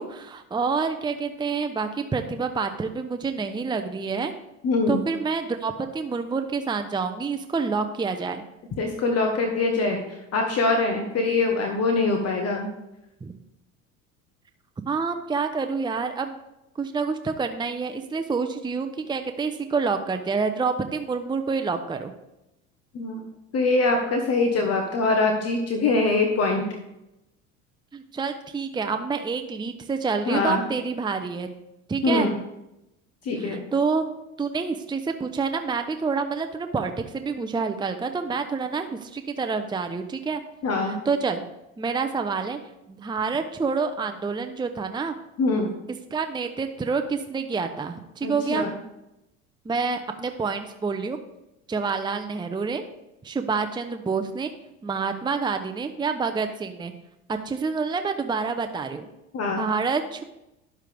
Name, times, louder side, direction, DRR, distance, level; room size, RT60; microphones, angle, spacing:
voice 1, 0.0-4.3 4.9-8.4 13.2-13.3 14.9-16.4 16.8-22.1 27.9-31.5 31.9-32.3 33.4-34.0 34.4-40.4 40.9-41.4 41.8-42.6 42.9-45.1 46.1-48.6 49.6-51.2 51.7-52.8 53.2-54.5 54.8-56.9 57.3-59.1 59.6-60.2, right 5 dB, 10° right, 7 dB, 0.7 m, -27 dB
voice 2, 4.6-5.0 8.8-12.7 22.9-23.2 23.5-26.7 30.3-30.6 32.0-32.3 33.2-33.6 40.6-41.0 45.4-45.7 48.2-48.7 59.3-59.7, left 3 dB, 45° left, 3 dB, 1.4 m, -23 dB
10.5 x 7.4 x 3.5 m, 0.90 s
hypercardioid pair, 80°, 36 cm